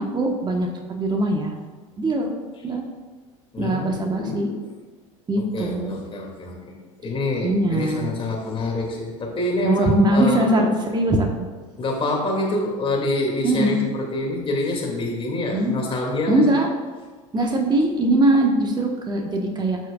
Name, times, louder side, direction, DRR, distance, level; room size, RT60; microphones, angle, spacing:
voice 1, 0.0-1.5 2.0-2.4 2.6-2.8 3.6-4.5 5.3-6.0 7.4-8.1 9.6-11.5 13.4-13.8 15.5-15.7 16.3-16.7 17.3-19.8, right 1 dB, 25° right, 2 dB, 1.5 m, -21 dB
voice 2, 3.5-4.6 5.4-6.8 7.0-10.7 11.8-16.6, left 2 dB, 35° left, 0 dB, 2.8 m, -26 dB
14.0 x 6.2 x 2.5 m, 1.4 s
hypercardioid pair, 70°, 17 cm